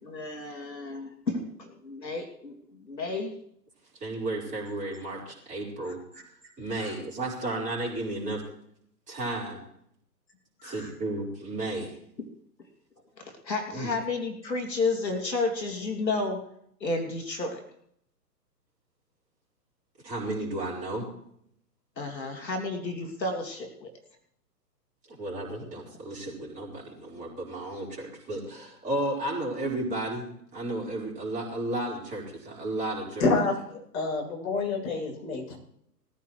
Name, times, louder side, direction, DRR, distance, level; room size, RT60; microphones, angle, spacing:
voice 1, 0.0-3.3 6.8-6.9 10.6-10.9 12.2-12.3 13.2-16.4 16.8-17.6 22.0-23.9, left 3 dB, 85° left, 3 dB, 2.7 m, -32 dB
voice 2, 4.0-6.2 6.6-8.4 9.1-9.6 10.6-12.0 13.7-13.9 20.0-21.1 25.1-30.3 30.5-33.3, right 2 dB, 15° right, -4 dB, 4.0 m, -33 dB
voice 3, 33.2-35.6, left 3 dB, 55° left, 1 dB, 7.1 m, -28 dB
21.0 x 14.0 x 3.1 m, 0.71 s
figure-of-eight pair, 125°, 50 cm